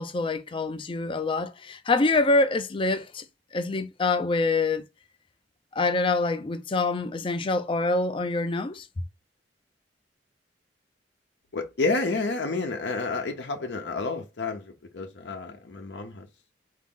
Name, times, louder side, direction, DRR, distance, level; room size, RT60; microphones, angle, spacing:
voice 1, 0.0-3.2 3.5-4.8 5.7-8.9, left 3 dB, 30° left, 0.5 m, -25 dB
voice 2, 11.5-16.3, left 3 dB, 75° left, 0.7 m, -30 dB
4.0 x 2.7 x 3.7 m
head